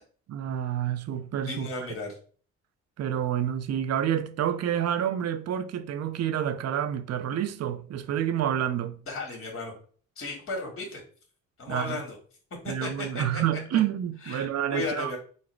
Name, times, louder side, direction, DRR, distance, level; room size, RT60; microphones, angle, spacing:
voice 1, 0.3-1.7 3.0-9.0 11.7-12.0 12.7-15.1, right 10 dB, 55° right, 0.5 m, -28 dB
voice 2, 1.4-2.2 9.1-9.7 10.2-11.0 11.6-12.2 12.6-13.6 14.2-15.2, left 3 dB, 45° left, 1.7 m, -35 dB
4.0 x 2.1 x 4.4 m
cardioid pair, 90°, 30 cm